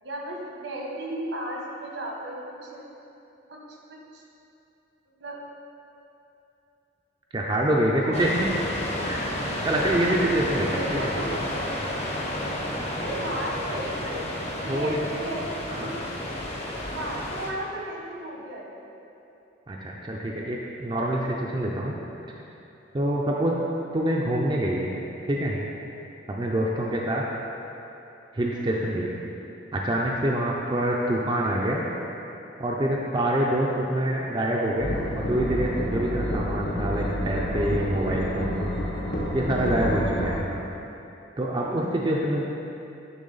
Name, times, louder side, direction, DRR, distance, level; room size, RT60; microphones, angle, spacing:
voice 1, 0.0-2.8 3.5-4.2 5.2-5.4 7.9-8.3 10.5-11.3 12.7-14.2 14.5-16.0 16.9-19.1 23.4-23.8 29.3-29.6 40.2-40.8, right 1 dB, 75° right, -2 dB, 1.1 m, -36 dB
voice 2, 7.3-8.5 9.0-9.2 9.6-11.1 14.6-15.0 15.7-15.9 19.7-22.0 22.9-23.6 23.9-24.9 25.2-25.6 26.3-27.2 28.3-29.2 29.7-31.8 32.6-38.7 39.3-40.5 41.4-42.4, right 1 dB, 25° right, -3 dB, 0.4 m, -26 dB
sound 1, 8.1-17.5, left 1 dB, 35° left, 0.7 m, -31 dB
sound 2, 34.8-40.4, equal, 65° left, 0.9 m, -29 dB
10.0 x 3.5 x 3.9 m, 2.9 s
head